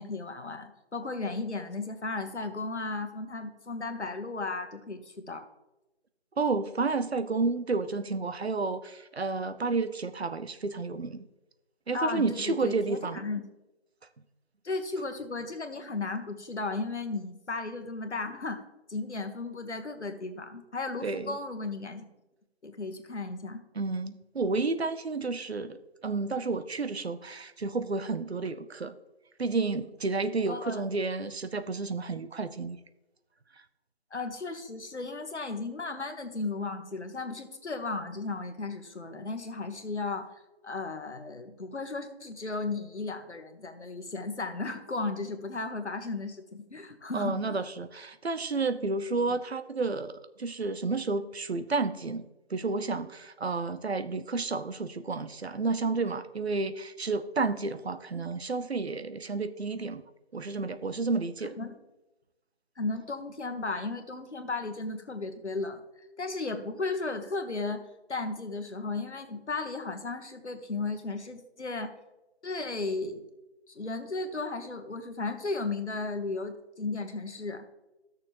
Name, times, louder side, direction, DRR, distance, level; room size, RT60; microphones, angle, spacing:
voice 1, 0.0-5.4 11.9-13.4 14.6-18.6 18.9-22.0 22.6-23.6 30.5-30.8 34.1-40.3 40.6-47.6 61.6-61.7 62.8-65.8 66.2-67.8 68.1-71.9 72.4-73.2 73.7-77.7, left 3 dB, 85° left, 6 dB, 1.4 m, -35 dB
voice 2, 6.4-11.2 11.9-13.2 21.0-21.4 23.8-29.0 29.4-32.8 47.1-60.0 60.3-61.5, right 3 dB, 70° right, 11 dB, 0.7 m, -31 dB
14.5 x 6.5 x 3.0 m, 1.0 s
figure-of-eight pair, 175°, 33 cm